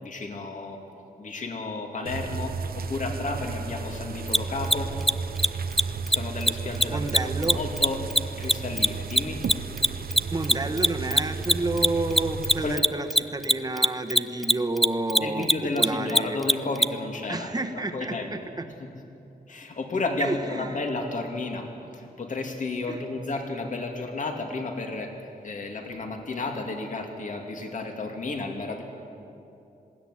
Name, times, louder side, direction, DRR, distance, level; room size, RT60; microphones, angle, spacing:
voice 1, 0.0-0.8 1.2-4.9 6.1-7.0 7.5-9.4 12.6-12.9 15.2-17.5 17.9-18.3 19.5-21.7 21.9-25.1 25.4-28.8, left 3 dB, 55° left, 3 dB, 2.7 m, -32 dB
sound 1, 2.0-12.8, right 5 dB, 70° right, 1.0 m, -33 dB
Mechanisms, 4.3-4.4 4.6-4.8 5.0-5.1 5.4-5.5 5.7-5.8 6.1-6.2 6.4-6.5 6.8-9.5 9.8-16.9, equal, ahead, 0.4 m, -19 dB
voice 2, 6.9-7.6 10.3-15.5 15.8-16.4 17.3-18.7 20.2-20.8 22.9-23.0, right 2 dB, 25° right, 5 dB, 1.5 m, -30 dB
20.0 x 16.0 x 10.0 m, 2.8 s
wide cardioid pair, 120°, 16 cm